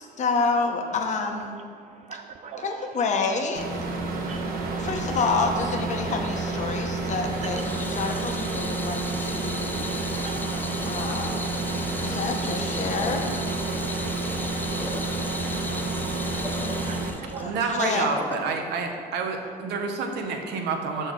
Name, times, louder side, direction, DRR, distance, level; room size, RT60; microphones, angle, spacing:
voice 1, 0.0-1.6 2.6-3.9 4.8-9.7 10.8-11.5 12.0-13.3 17.4-18.1, left 4 dB, 45° left, 3 dB, 0.9 m, -28 dB
voice 2, 1.4-3.0 3.9-5.0 7.4-17.6 17.9-18.8 19.7-20.3, right 6 dB, 45° right, 7 dB, 0.4 m, -46 dB
sound 1, 3.5-17.1, right 3 dB, 60° right, 1.2 m, -30 dB
Water tap faucet / Sink (filling or washing), 7.2-18.5, left 2 dB, 10° left, 0.5 m, -36 dB
voice 3, 17.4-21.1, right 4 dB, 80° right, 4 dB, 1.0 m, -28 dB
6.6 x 4.3 x 6.1 m, 2.2 s
cardioid pair, 110°, 17 cm